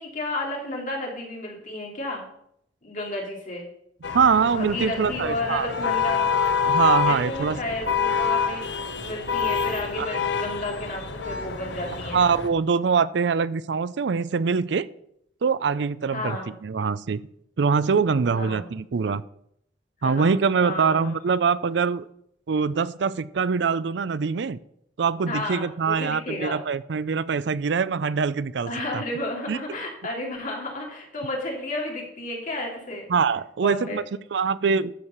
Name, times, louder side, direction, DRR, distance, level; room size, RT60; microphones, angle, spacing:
voice 1, 0.0-2.2 2.8-3.7 4.5-6.3 7.1-8.6 9.0-12.2 16.1-16.5 18.3-18.7 20.0-20.3 20.6-21.1 25.3-26.6 28.7-33.1 33.6-34.0, left 1 dB, 45° left, -1 dB, 3.1 m, -32 dB
sound 1, 4.0-12.5, left 6 dB, 70° left, 1.1 m, -27 dB
voice 2, 4.1-5.7 6.7-7.6 10.0-10.1 12.1-14.9 15.4-17.2 17.6-19.2 20.0-22.1 22.5-24.6 25.0-29.0 29.5-29.6 33.1-34.0 34.3-34.9, right 5 dB, 70° right, 18 dB, 0.5 m, -23 dB
12.5 x 4.8 x 6.6 m, 0.73 s
head